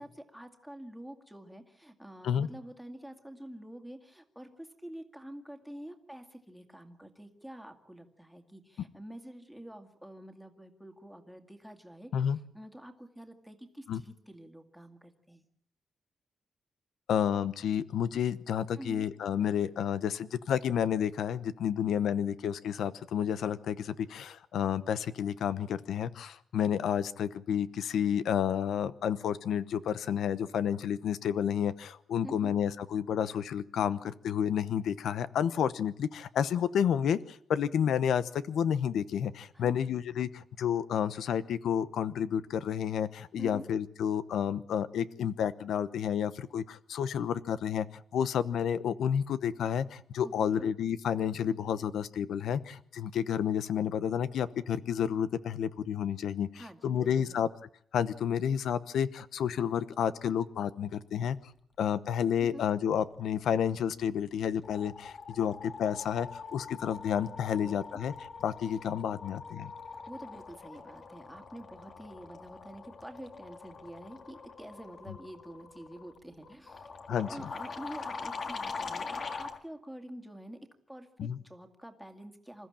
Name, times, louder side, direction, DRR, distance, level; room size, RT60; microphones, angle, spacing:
voice 1, 0.0-15.4 18.8-19.1 32.2-32.6 39.5-40.0 43.4-43.7 50.2-50.7 56.5-57.5 62.4-62.6 67.6-68.0 69.9-80.6 80.9-82.7, right 1 dB, ahead, 6 dB, 2.2 m, -47 dB
voice 2, 17.1-57.5 57.9-61.4 61.8-68.1 68.4-69.7 77.1-77.3 81.2-81.4, left 8 dB, 90° left, 15 dB, 0.9 m, -30 dB
sound 1, 64.4-79.6, left 4 dB, 40° left, 1.9 m, -43 dB
27.0 x 14.5 x 8.8 m, 0.63 s
wide cardioid pair, 160°, 0 cm